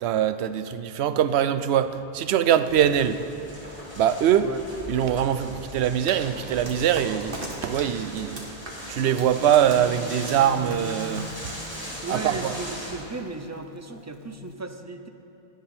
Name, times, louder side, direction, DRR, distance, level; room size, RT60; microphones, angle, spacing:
voice 1, 0.0-3.2 4.0-4.5 4.9-8.5 8.9-11.3 11.8-12.5, right 10 dB, 75° right, 0.8 m, -23 dB
sound 1, 2.6-13.0, equal, 10° right, 3.2 m, -39 dB
sound 2, 6.1-11.8, right 1 dB, 55° right, 1.7 m, -40 dB
sound 3, 8.9-14.6, left 2 dB, 70° left, 0.9 m, -43 dB
voice 2, 12.0-15.1, right 3 dB, 30° right, 0.3 m, -35 dB
16.5 x 10.5 x 4.3 m
omnidirectional pair, 1.1 m